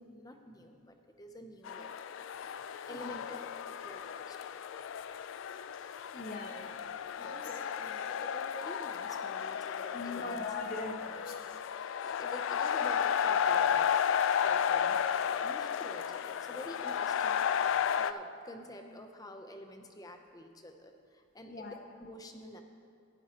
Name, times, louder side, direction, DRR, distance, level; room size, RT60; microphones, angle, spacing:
voice 1, 0.0-1.9 2.2-2.5 2.9-4.4 7.2-10.5 11.8-21.7 22.0-22.6, left 1 dB, 20° left, 5 dB, 0.6 m, -49 dB
sound 1, 1.6-18.1, left 8 dB, 70° left, 0.3 m, -33 dB
voice 2, 6.1-6.8 7.2-7.5 9.8-11.4 21.5-21.8, left 2 dB, 45° left, 2 dB, 1.1 m, -41 dB
15.0 x 11.0 x 2.9 m, 2.4 s
head